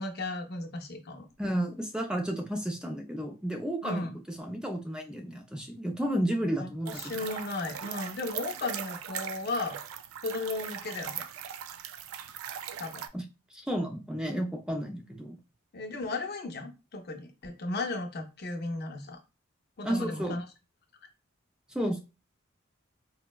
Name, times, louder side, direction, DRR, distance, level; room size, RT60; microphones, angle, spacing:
voice 1, 0.0-1.3 3.8-4.2 6.6-9.8 10.2-11.3 12.8-13.0 15.7-19.2 19.8-20.5, left 2 dB, 50° left, 4 dB, 0.5 m, -35 dB
voice 2, 1.4-7.3 13.1-13.2 13.5-15.4 19.8-20.4 21.7-22.0, right 1 dB, 5° right, 3 dB, 0.3 m, -32 dB
sound 1, 6.8-13.1, right 9 dB, 85° right, 0.3 m, -40 dB
4.2 x 2.0 x 2.2 m, 0.30 s
head